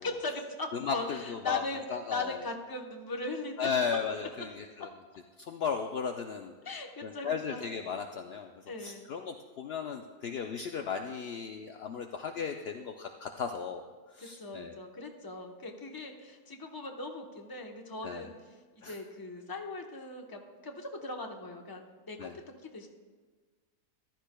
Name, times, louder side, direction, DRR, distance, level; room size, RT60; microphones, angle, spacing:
voice 1, 0.0-1.8 2.1-3.7 6.6-7.6 8.7-9.1 14.2-18.3 18.8-22.3 22.6-22.9, left 3 dB, 20° left, 2 dB, 0.7 m, -39 dB
voice 2, 0.7-1.6 1.9-2.4 3.6-4.9 5.4-6.6 7.0-14.7 18.0-18.3 18.8-19.0 22.2-22.3, left 6 dB, 75° left, 4 dB, 0.5 m, -36 dB
14.5 x 12.0 x 2.2 m, 1.4 s
omnidirectional pair, 1.6 m